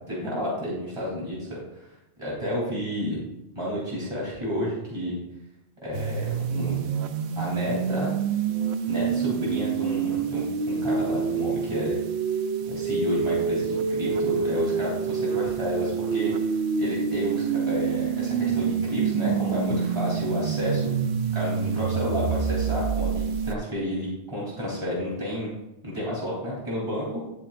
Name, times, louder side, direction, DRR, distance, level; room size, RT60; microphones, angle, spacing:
voice 1, 0.1-1.8 2.2-3.2 3.6-5.2 5.8-6.9 7.4-8.1 8.9-12.0 12.7-16.3 16.8-20.9 21.3-25.5 25.8-27.2, left 1 dB, 25° right, -6 dB, 3.4 m, -31 dB
sound 1, 5.9-23.5, right 6 dB, 70° right, 0.9 m, -27 dB
11.0 x 7.2 x 2.6 m, 0.91 s
omnidirectional pair, 1.2 m